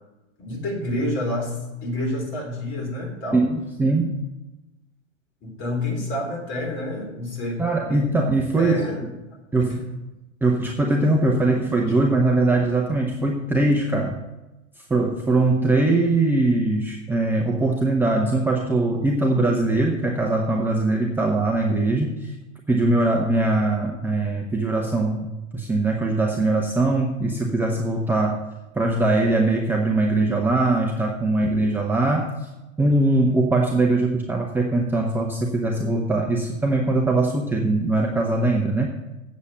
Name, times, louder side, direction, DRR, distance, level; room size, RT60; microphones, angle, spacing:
voice 1, 0.4-1.6 1.8-3.4 5.4-7.6 7.9-8.0 8.6-9.0 9.7-9.9, left 1 dB, 30° left, 0 dB, 3.9 m, -28 dB
voice 2, 3.3-4.1 7.6-9.1 9.5-9.8 10.4-14.2 14.8-22.3 22.7-25.3 25.5-28.4 28.8-32.5 32.8-38.9, right 2 dB, 5° right, 0 dB, 0.8 m, -21 dB
8.2 x 7.4 x 7.7 m, 1.0 s
hypercardioid pair, 105°, 39 cm